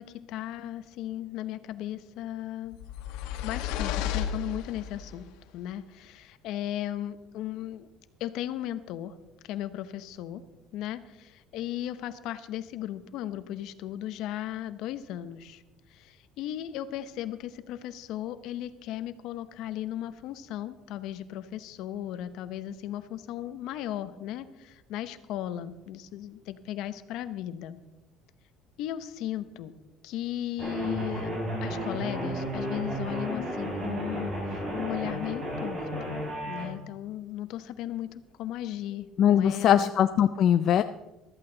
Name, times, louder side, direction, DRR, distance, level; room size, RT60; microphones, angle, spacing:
voice 1, 0.0-2.8 3.4-7.9 8.2-9.2 9.4-10.4 10.7-15.6 15.9-27.8 28.8-29.7 30.0-31.3 31.6-36.1 36.5-39.9, left 12 dB, 70° left, 12 dB, 0.9 m, -36 dB
sound 1, 2.7-5.1, left 9 dB, 90° left, 1.2 m, -33 dB
sound 2, 30.6-36.6, right 1 dB, 45° right, 6.1 m, -33 dB
voice 2, 39.2-40.8, left 9 dB, 50° left, 9 dB, 0.4 m, -21 dB
14.5 x 13.5 x 4.0 m, 1.0 s
cardioid pair, 135°, 0 cm